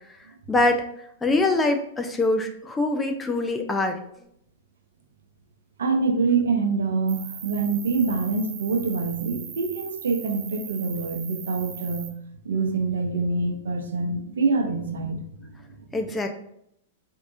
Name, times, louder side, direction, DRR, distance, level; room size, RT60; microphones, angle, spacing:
voice 1, 0.5-0.8 1.2-4.0 15.9-16.3, left 2 dB, 15° left, 5 dB, 0.5 m, -23 dB
voice 2, 5.8-12.2 12.4-15.9, right 4 dB, 75° right, 4 dB, 0.7 m, -25 dB
Cricket, 7.1-12.1, right 7 dB, 35° right, 0.7 m, -40 dB
4.5 x 2.7 x 2.6 m, 0.72 s
hypercardioid pair, 105°, 0 cm